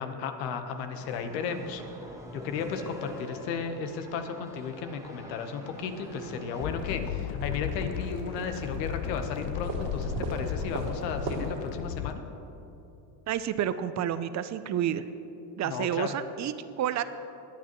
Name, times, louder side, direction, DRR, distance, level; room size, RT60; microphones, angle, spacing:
voice 1, 0.0-1.8 2.3-12.2 15.6-16.1, left 6 dB, 85° left, 7 dB, 1.1 m, -34 dB
sound 1, 1.0-6.7, equal, 5° right, 1.3 m, -46 dB
sound 2, 5.7-11.6, right 4 dB, 70° right, 2.8 m, -39 dB
sound 3, 6.6-12.1, left 10 dB, 65° left, 0.6 m, -35 dB
voice 2, 13.3-15.1 15.6-17.0, right 10 dB, 35° right, 13 dB, 0.5 m, -30 dB
20.0 x 8.6 x 3.0 m, 2.8 s
supercardioid pair, 90°, 48 cm